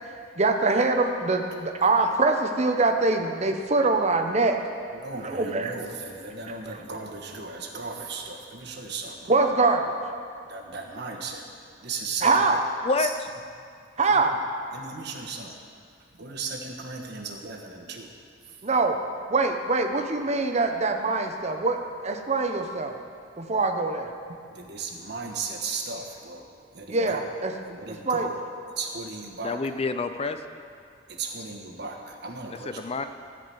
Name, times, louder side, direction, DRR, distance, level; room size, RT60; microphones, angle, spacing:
voice 1, 0.4-4.6 5.1-5.7 6.5-6.8 9.3-9.9 12.2-12.6 14.0-14.4 18.6-19.0 19.3-22.9 23.4-24.1 26.9-27.5 27.9-28.3, right 3 dB, 35° right, 5 dB, 0.8 m, -24 dB
voice 2, 4.9-9.3 10.5-11.4 11.8-12.5 13.0-13.1 14.1-14.2 14.7-15.5 16.2-18.1 24.5-26.4 26.7-27.3 27.6-28.4 28.8-29.6 31.1-32.8, right 4 dB, 65° right, 1 dB, 1.4 m, -36 dB
voice 3, 12.8-13.3 29.4-30.4 32.5-33.1, left 3 dB, 35° left, 9 dB, 0.5 m, -28 dB
14.5 x 5.0 x 7.9 m, 2.3 s
head